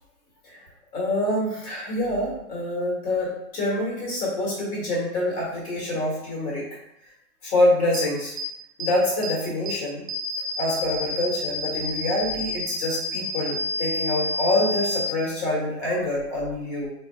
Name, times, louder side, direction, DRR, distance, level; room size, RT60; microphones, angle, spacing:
voice 1, 0.9-6.6 7.4-8.3 8.8-10.0 10.6-16.9, left 1 dB, 25° left, -4 dB, 1.3 m, -26 dB
sound 1, 7.9-8.0 8.4-8.5 8.8-8.9 9.2-9.3 9.6-9.7 10.1-15.1, equal, 80° right, 0.8 m, -29 dB
4.3 x 3.2 x 2.2 m, 0.83 s
hypercardioid pair, 150°, 45 cm